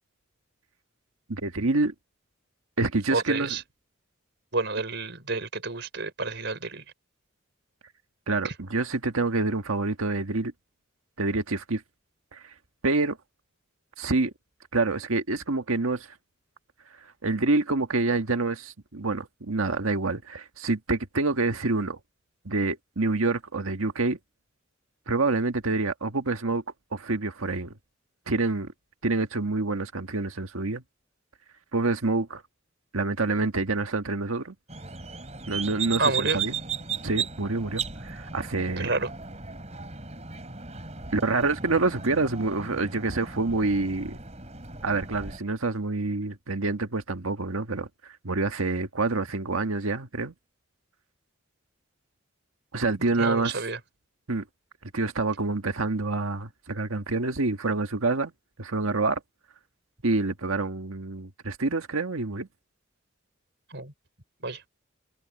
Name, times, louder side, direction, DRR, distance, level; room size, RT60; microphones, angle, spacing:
voice 1, 1.3-1.9 2.8-3.5 8.3-10.5 11.2-11.8 12.3-12.4 12.8-13.2 14.0-14.3 14.7-16.1 17.2-22.0 22.4-24.2 25.1-26.6 26.9-27.7 28.3-28.7 29.0-30.8 31.7-32.4 32.9-34.5 35.5-36.5 37.0-38.9 41.1-44.2 44.8-47.9 48.2-50.3 52.7-53.6 54.3-54.4 54.9-58.3 58.6-59.2 60.0-62.5, right 3 dB, 90° right, 1.6 m, -27 dB
voice 2, 3.1-3.6 4.5-6.8 8.4-8.5 36.0-36.4 38.8-39.1 53.2-53.8 63.7-63.9 64.4-64.6, right 3 dB, 55° right, 5.1 m, -29 dB
sound 1, 34.7-45.4, right 6 dB, 30° right, 5.0 m, -36 dB
head